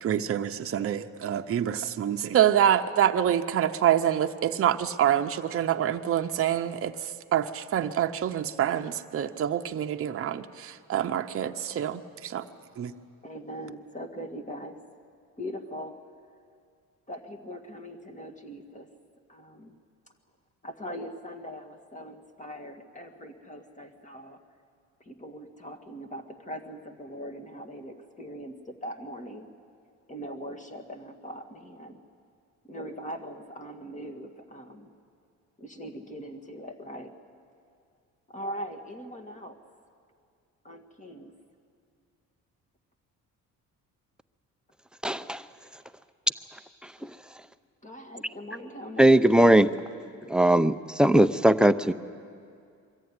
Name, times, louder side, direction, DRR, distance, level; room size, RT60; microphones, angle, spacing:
voice 1, 0.0-12.5 12.8-12.9, right 10 dB, 45° right, 5 dB, 0.8 m, -26 dB
voice 2, 13.2-14.8 15.4-16.0 17.1-18.9 19.3-19.8 20.6-24.4 25.0-29.5 30.1-32.0 32.7-34.9 35.6-37.1 38.3-39.6 40.6-41.3 47.8-49.2, equal, 25° left, 4 dB, 1.7 m, -41 dB
voice 3, 45.0-45.4 47.0-47.1 49.0-49.7 50.3-51.9, right 1 dB, 5° right, 10 dB, 0.5 m, -19 dB
22.5 x 14.0 x 9.7 m, 2.3 s
cardioid pair, 90°, 32 cm